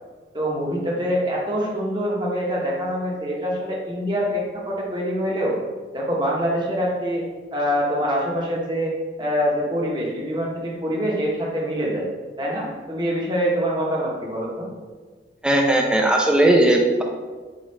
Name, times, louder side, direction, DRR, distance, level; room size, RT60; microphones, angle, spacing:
voice 1, 0.3-5.5 5.9-7.2 7.5-8.9 9.2-12.1 12.4-14.7, equal, 25° right, -3 dB, 0.8 m, -25 dB
voice 2, 15.4-17.0, right 1 dB, 5° right, 1 dB, 0.4 m, -17 dB
5.0 x 2.3 x 4.1 m, 1.4 s
head